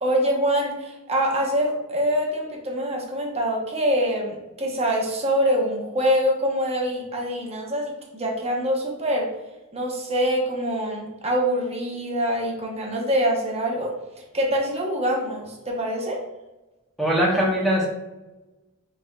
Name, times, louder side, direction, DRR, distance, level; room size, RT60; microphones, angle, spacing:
voice 1, 0.0-9.3 9.7-13.9 14.3-16.2, equal, 30° right, -1 dB, 0.9 m, -24 dB
voice 2, 17.0-17.9, equal, ahead, -4 dB, 0.7 m, -21 dB
6.0 x 3.3 x 2.3 m, 1.0 s
head